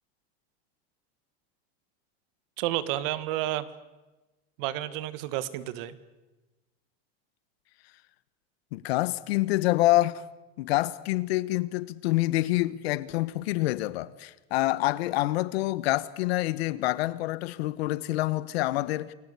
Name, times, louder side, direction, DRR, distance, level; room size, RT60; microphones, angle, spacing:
voice 1, 2.6-3.7 4.6-6.0, right 14 dB, 60° right, 1.7 m, -30 dB
voice 2, 8.7-10.3 10.6-19.1, left 17 dB, 85° left, 1.3 m, -27 dB
29.0 x 20.5 x 8.3 m
supercardioid pair, 170°, 30 cm